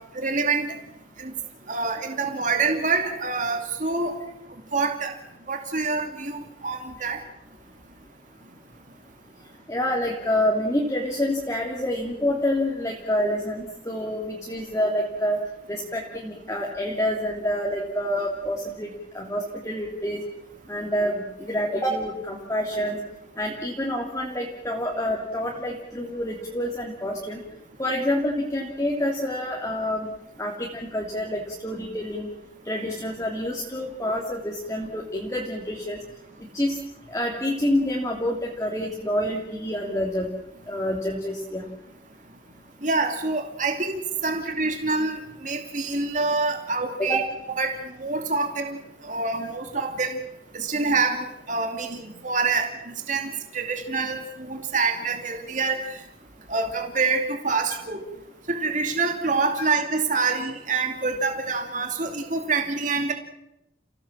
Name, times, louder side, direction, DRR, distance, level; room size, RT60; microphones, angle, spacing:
voice 1, 0.1-0.7 1.2-1.3 1.7-4.1 4.7-5.1 5.5-7.2 42.8-47.2 47.6-47.7 48.0-48.8 49.0-50.2 50.5-55.8 56.5-58.0 58.5-63.1, right 4 dB, 40° right, 4 dB, 2.7 m, -26 dB
voice 2, 9.7-15.4 15.7-20.2 20.7-23.0 23.4-27.4 27.8-30.1 30.4-32.3 32.6-36.0 36.5-36.8 37.1-40.3 40.7-41.7 47.0-47.3, left 1 dB, 15° left, -1 dB, 2.8 m, -27 dB
30.0 x 17.0 x 7.4 m, 0.87 s
head